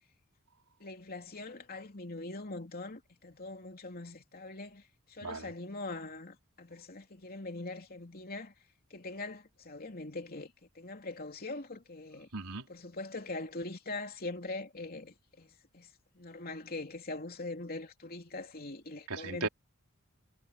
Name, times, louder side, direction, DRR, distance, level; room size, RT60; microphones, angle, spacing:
voice 1, 0.8-8.5 8.9-12.3 12.7-19.5, left 2 dB, 45° left, 3.1 m, -42 dB
voice 2, 5.2-5.5 12.3-12.7 19.1-19.5, right 3 dB, 85° right, 4.0 m, -36 dB
head